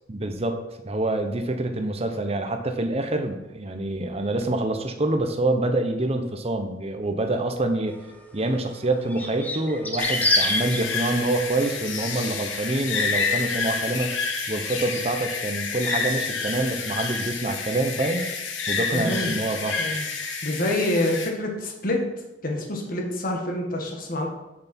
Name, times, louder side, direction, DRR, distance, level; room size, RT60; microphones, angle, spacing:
voice 1, 0.1-0.6 0.9-8.0 8.3-14.2 14.5-18.3 18.7-19.8, right 2 dB, 35° right, 5 dB, 0.9 m, -26 dB
sound 1, 8.1-8.2 9.1-10.8 13.1-13.5, left 1 dB, 10° left, 0.9 m, -25 dB
sound 2, 10.0-21.3, left 4 dB, 85° left, 1.1 m, -29 dB
voice 2, 18.9-19.3 19.8-22.0 22.4-24.3, left 1 dB, 50° left, 1 dB, 1.6 m, -27 dB
7.9 x 6.9 x 4.4 m, 0.99 s
head